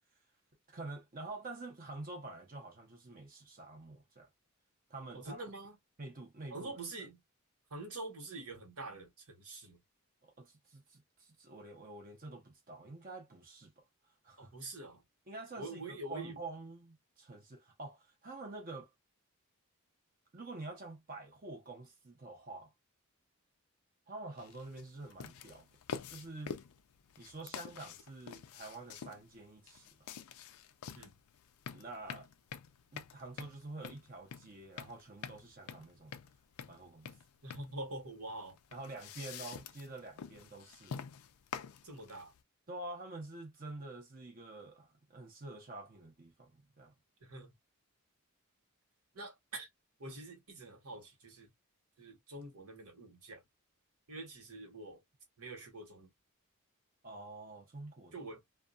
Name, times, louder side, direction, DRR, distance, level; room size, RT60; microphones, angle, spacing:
voice 1, 0.7-4.3 4.9-5.4 6.0-6.7 10.2-13.7 14.2-14.5 15.3-18.9 20.3-22.7 24.1-25.7 26.1-26.5 27.2-30.1 31.7-32.3 32.9-36.2 36.7-37.1 38.7-41.1 42.7-46.9 57.0-58.2, right 2 dB, 40° right, 0.6 m, -47 dB
voice 2, 5.1-5.8 6.5-7.2 7.7-9.8 14.4-15.0 15.6-16.4 30.9-31.2 37.4-38.6 41.8-42.3 47.2-47.5 49.1-49.7 50.0-51.5 52.0-53.4 54.1-55.0 55.4-56.1 58.1-58.4, right 2 dB, 80° right, 1.2 m, -46 dB
sound 1, 24.4-42.4, left 7 dB, 80° left, 0.4 m, -48 dB
2.3 x 2.2 x 2.4 m
head